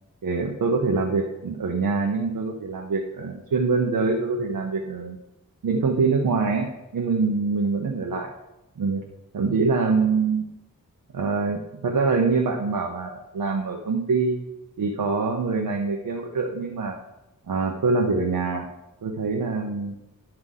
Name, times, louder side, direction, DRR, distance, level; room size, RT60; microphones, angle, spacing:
voice 1, 0.2-5.2 5.6-6.7 6.9-8.3 8.8-9.0 9.3-10.5 11.1-14.4 14.8-17.0 17.5-18.6 19.0-20.0, right 4 dB, 75° right, 0 dB, 1.0 m, -24 dB
11.0 x 6.0 x 3.8 m, 0.93 s
wide cardioid pair, 85°, 34 cm